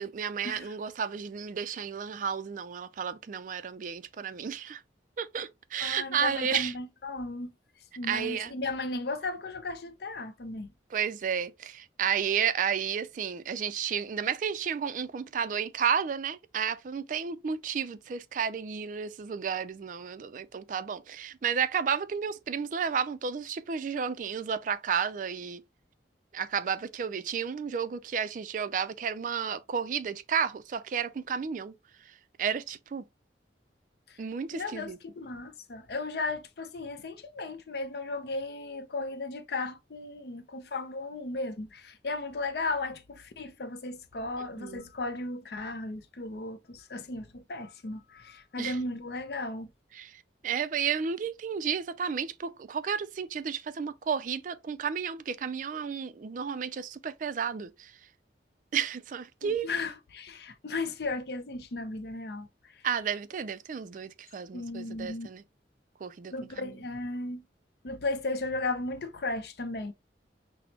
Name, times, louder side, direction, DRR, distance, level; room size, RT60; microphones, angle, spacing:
voice 1, 0.0-4.8 5.2-6.7 8.1-8.5 10.9-25.6 26.3-31.7 32.4-33.0 34.2-35.0 44.6-44.9 48.6-48.8 49.9-50.1 50.4-57.9 58.7-59.7 62.8-65.4 66.0-66.8, right 7 dB, 45° right, 0.3 m, -32 dB
voice 2, 5.8-7.5 8.0-10.7 34.1-34.2 34.5-49.7 59.4-62.8 64.5-65.3 66.3-67.4 67.8-69.9, left 2 dB, 60° left, 0.6 m, -35 dB
6.0 x 2.0 x 2.8 m
head